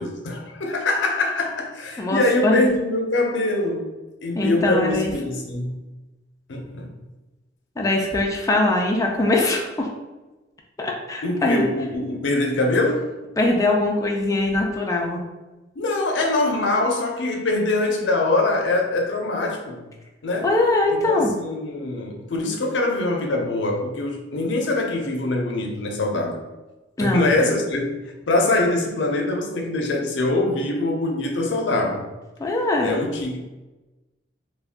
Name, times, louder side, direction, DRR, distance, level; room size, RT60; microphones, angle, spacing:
voice 1, 0.0-3.9 4.2-5.8 6.5-6.9 11.2-13.1 15.8-19.8 20.2-20.5 20.9-26.4 27.0-32.1 32.8-33.4, left 2 dB, 90° left, 0.5 m, -23 dB
voice 2, 2.0-2.6 4.3-5.1 7.8-9.9 10.8-11.6 13.4-15.2 20.4-21.3 27.0-27.3 32.4-32.9, left 2 dB, 20° left, 0.3 m, -22 dB
2.4 x 2.2 x 3.4 m
head